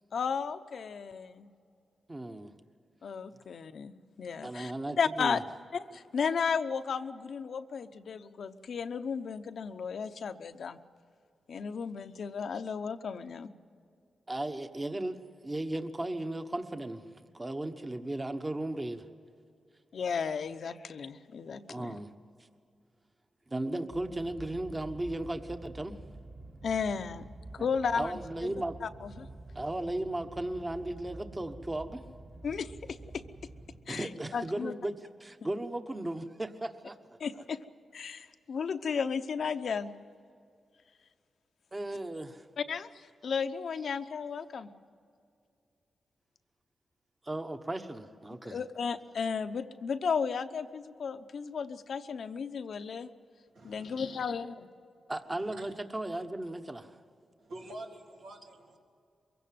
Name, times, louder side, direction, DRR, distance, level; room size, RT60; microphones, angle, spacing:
voice 1, 0.1-1.5 3.0-5.4 5.7-10.8 11.5-13.5 19.9-22.0 26.6-27.2 27.5-28.1 28.4-28.5 28.8-29.3 32.4-33.2 33.9-34.7 37.2-37.6 37.9-39.9 42.6-44.7 48.4-53.1 53.6-54.5, left 6 dB, 70° left, 9 dB, 0.9 m, -34 dB
voice 2, 2.1-2.5 4.4-5.4 14.3-19.1 21.7-22.1 23.5-25.9 28.0-28.8 29.5-32.0 33.9-34.9 35.2-37.0 41.7-42.4 47.2-48.6 55.1-57.0, right 1 dB, 25° right, 8 dB, 1.3 m, -36 dB
sound 1, 23.9-33.8, right 2 dB, 50° right, 2.5 m, -48 dB
voice 3, 53.5-54.2 55.4-55.7 57.4-58.8, right 1 dB, 90° right, -1 dB, 3.1 m, -47 dB
23.0 x 16.5 x 7.8 m, 2.4 s
cardioid pair, 65°, 0 cm